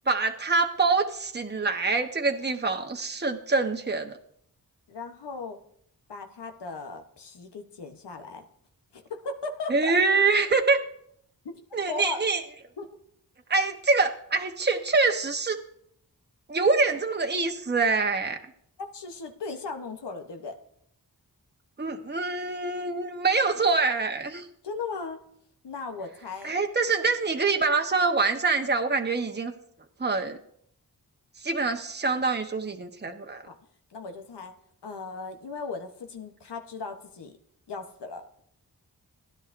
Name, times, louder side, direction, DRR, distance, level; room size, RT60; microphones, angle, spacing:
voice 1, 0.1-4.2 9.7-10.8 11.7-12.4 13.5-15.6 16.5-18.4 21.8-24.5 26.4-29.5 30.0-30.4 31.4-33.4, right 4 dB, 25° right, 4 dB, 1.0 m, -25 dB
voice 2, 4.9-5.6 6.1-8.4 8.9-9.9 11.9-12.2 12.8-12.9 18.9-20.6 24.6-25.2 25.6-26.5 33.5-33.6 33.9-34.5 34.8-37.3 37.7-38.3, left 4 dB, 85° left, 5 dB, 1.0 m, -37 dB
16.0 x 10.5 x 2.6 m, 0.68 s
cardioid pair, 50°, 40 cm